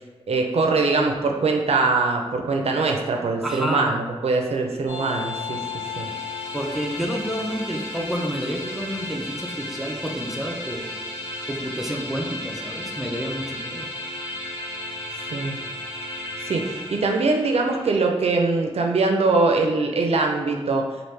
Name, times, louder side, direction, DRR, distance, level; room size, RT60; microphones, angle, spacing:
voice 1, 0.3-5.6 6.0-6.1 15.3-15.6 16.4-20.8, right 3 dB, 70° right, 2 dB, 0.4 m, -22 dB
voice 2, 3.4-4.0 6.5-10.9 11.5-13.9, equal, 5° right, 1 dB, 0.4 m, -29 dB
sound 1, 4.9-18.0, left 2 dB, 60° left, 1.2 m, -34 dB
3.1 x 2.5 x 3.2 m, 1.2 s
wide cardioid pair, 70°, 11 cm